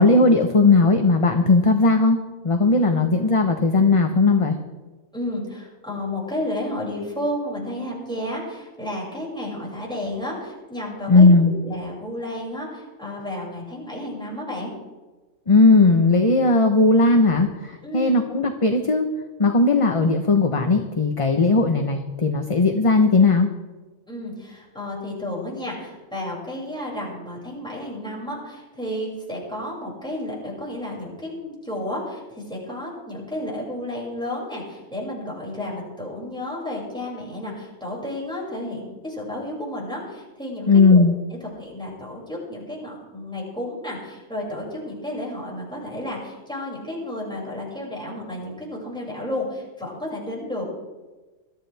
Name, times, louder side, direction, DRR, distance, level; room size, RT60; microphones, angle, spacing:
voice 1, 0.0-2.2 2.4-4.6 11.1-11.5 15.5-19.0 19.4-23.5 40.7-41.1, left 3 dB, 30° left, 5 dB, 0.9 m, -17 dB
voice 2, 5.1-14.7 17.8-18.3 24.1-41.0 41.4-50.6, left 1 dB, 5° left, -5 dB, 6.2 m, -32 dB
22.0 x 13.5 x 3.5 m, 1.2 s
omnidirectional pair, 1.3 m